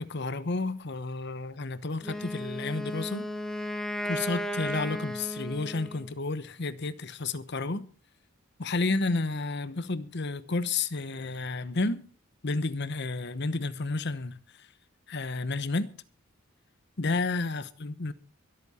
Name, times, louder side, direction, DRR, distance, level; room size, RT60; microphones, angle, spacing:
voice 1, 0.0-3.3 4.0-7.9 8.6-12.0 12.4-14.7 15.1-15.9 17.0-18.1, left 3 dB, 55° left, 0.9 m, -31 dB
Wind instrument woodwind instrument, 2.0-6.1, equal, ahead, 1.3 m, -35 dB
23.5 x 8.6 x 4.3 m
head